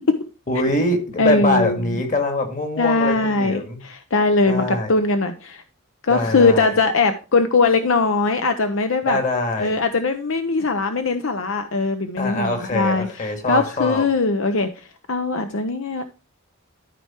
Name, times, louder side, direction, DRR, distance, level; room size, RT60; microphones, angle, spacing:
voice 1, 0.5-3.8 4.5-4.9 6.1-6.7 9.1-9.7 12.2-14.1, left 2 dB, 40° left, 5 dB, 2.1 m, -23 dB
voice 2, 1.2-2.0 2.8-5.6 6.0-9.2 9.6-16.0, left 3 dB, 70° left, 8 dB, 0.7 m, -21 dB
12.5 x 4.6 x 4.4 m, 0.32 s
head